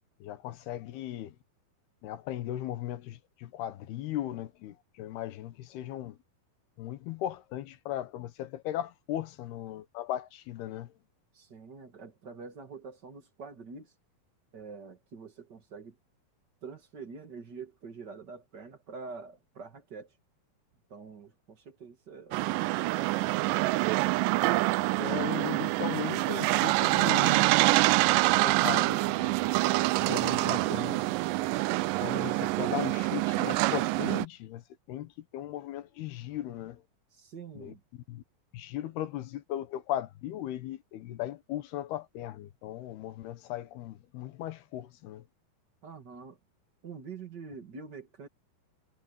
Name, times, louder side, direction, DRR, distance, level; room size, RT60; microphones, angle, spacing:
voice 1, 0.2-1.4 2.0-6.2 6.8-10.9 25.0-27.5 28.0-29.4 29.8-31.0 32.0-34.6 34.9-36.8 37.6-37.8 38.1-38.2 38.5-45.2, left 12 dB, 85° left, 3.3 m, -37 dB
voice 2, 11.3-13.9 14.5-16.0 16.6-20.1 20.9-23.1 37.1-37.8 45.8-46.4 46.8-48.3, right 5 dB, 35° right, 1.9 m, -45 dB
sound 1, 22.3-34.3, right 20 dB, 85° right, 1.9 m, -26 dB
omnidirectional pair, 4.4 m